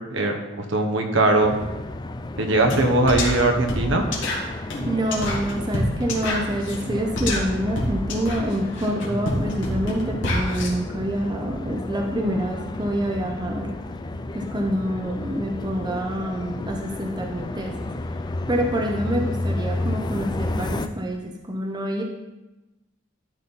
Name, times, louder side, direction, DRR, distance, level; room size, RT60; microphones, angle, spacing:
voice 1, 0.1-1.6 2.4-4.0, right 2 dB, 65° right, 3 dB, 1.2 m, -20 dB
sound 1, 1.4-20.9, left 2 dB, 20° left, 0.3 m, -32 dB
sound 2, 2.7-2.8 3.1-10.7, left 1 dB, 60° left, 2.0 m, -27 dB
voice 2, 4.6-13.7 14.3-17.9 18.5-22.0, right 1 dB, 20° right, 1 dB, 0.8 m, -27 dB
12.0 x 4.3 x 5.4 m, 1.0 s
head